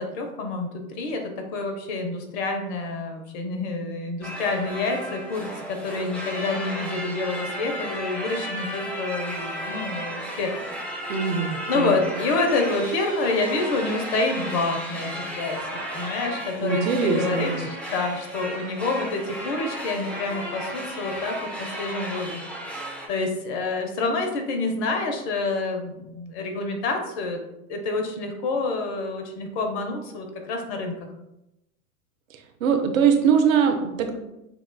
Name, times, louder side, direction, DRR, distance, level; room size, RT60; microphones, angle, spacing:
voice 1, 0.0-10.5 11.0-11.1 11.7-22.4 23.1-27.4 27.7-31.1, left 3 dB, 45° left, 4 dB, 0.9 m, -28 dB
sound 1, 4.2-23.1, right 1 dB, 5° left, 0.5 m, -34 dB
voice 2, 11.1-12.0 16.6-17.7 32.6-34.1, right 6 dB, 65° right, 5 dB, 0.7 m, -22 dB
6.7 x 2.4 x 2.3 m, 0.91 s
hypercardioid pair, 95°, 44 cm